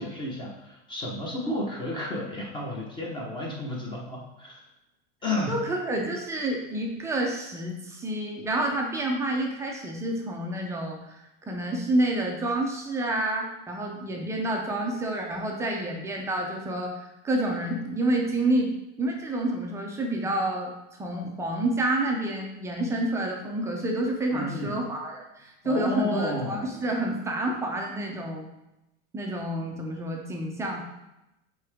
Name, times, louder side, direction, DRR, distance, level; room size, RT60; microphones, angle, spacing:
voice 1, 0.0-4.6 5.2-5.6 24.3-24.8 25.6-26.7, left 1 dB, 15° left, -1 dB, 0.9 m, -32 dB
voice 2, 5.5-11.2 11.5-18.7 19.0-20.7 21.0-28.5 29.1-30.8, right 1 dB, 10° right, 0 dB, 0.5 m, -29 dB
8.2 x 3.8 x 3.4 m, 0.92 s
supercardioid pair, 165°, 36 cm